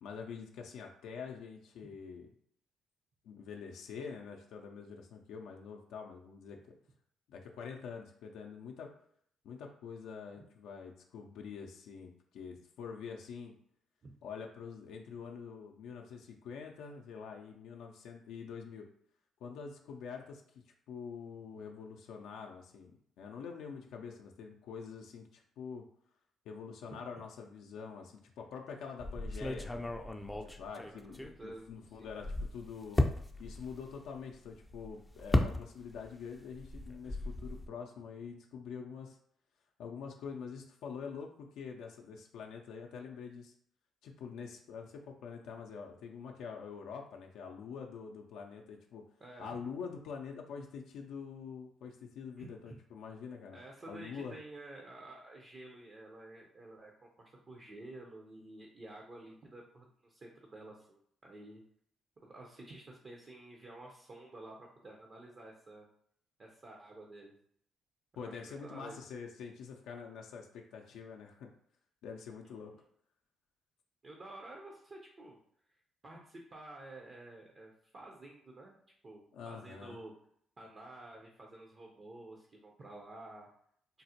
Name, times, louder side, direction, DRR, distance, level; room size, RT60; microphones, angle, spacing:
voice 1, 0.0-2.3 3.2-6.6 7.3-8.9 9.4-13.5 14.2-18.9 19.4-20.4 20.9-25.8 26.5-29.8 30.4-33.1 33.4-39.2 39.8-43.5 44.0-49.0 49.4-53.6 53.9-54.3 68.2-71.5 72.0-72.7 79.3-80.0, left 6 dB, 80° left, 1 dB, 0.4 m, -45 dB
sound 1, 29.0-31.7 32.0-36.1 36.4-37.7, left 1 dB, 15° left, 0.4 m, -35 dB
voice 2, 30.9-31.7 32.0-32.2 49.2-49.6 52.4-52.7 53.5-61.6 62.2-65.9 66.4-67.3 68.2-69.0 74.0-75.4 75.7-75.8 76.0-78.8 79.0-80.1 80.6-83.5, right 2 dB, 45° right, 0 dB, 0.6 m, -51 dB
3.7 x 2.1 x 2.8 m, 0.67 s
supercardioid pair, 70°, 0 cm